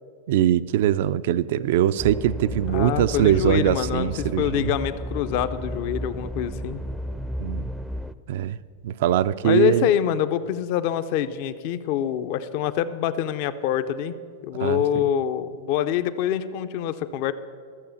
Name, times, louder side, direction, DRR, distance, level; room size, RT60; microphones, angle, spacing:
voice 1, 0.3-4.7 7.4-7.7 8.3-8.6 8.8-9.9 14.6-15.1, right 11 dB, 65° right, 15 dB, 0.3 m, -22 dB
sound 1, 2.0-8.1, equal, 5° right, 0.4 m, -33 dB
voice 2, 2.7-6.8 9.4-14.2 14.4-17.3, left 10 dB, 55° left, 12 dB, 0.5 m, -25 dB
13.0 x 6.9 x 7.0 m, 2.1 s
hypercardioid pair, 125°, 0 cm